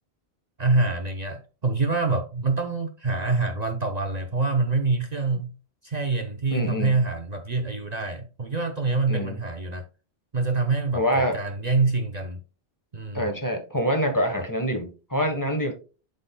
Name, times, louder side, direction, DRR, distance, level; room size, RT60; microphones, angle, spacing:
voice 1, 0.6-5.5 5.8-9.8 10.3-12.4 12.9-13.3, right 3 dB, 45° right, 0.8 m, -25 dB
voice 2, 6.5-7.0 9.1-9.4 10.9-11.4 13.1-15.7, equal, 20° left, 1.3 m, -25 dB
11.5 x 4.0 x 2.2 m
omnidirectional pair, 1.1 m